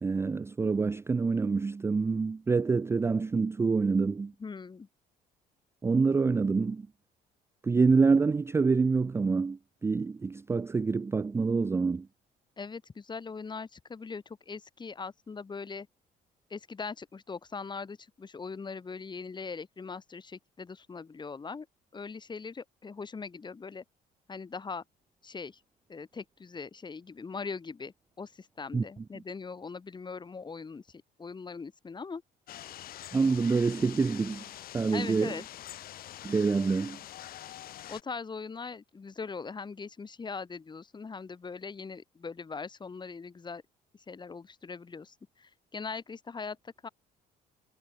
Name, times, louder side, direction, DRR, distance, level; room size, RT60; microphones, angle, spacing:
voice 1, 0.0-4.3 5.8-6.9 7.6-12.1 28.7-28.8 33.1-34.5 34.7-35.3 36.2-37.0, right 4 dB, 15° right, 0.3 m, -26 dB
voice 2, 4.4-4.9 12.6-15.9 16.5-21.7 21.9-23.8 24.3-24.8 25.2-25.6 25.9-32.2 34.9-35.4 37.9-43.6 44.1-46.9, left 4 dB, 25° left, 4.2 m, -41 dB
sound 1, 32.5-38.0, left 13 dB, 60° left, 1.0 m, -45 dB
cardioid pair, 110°, 17 cm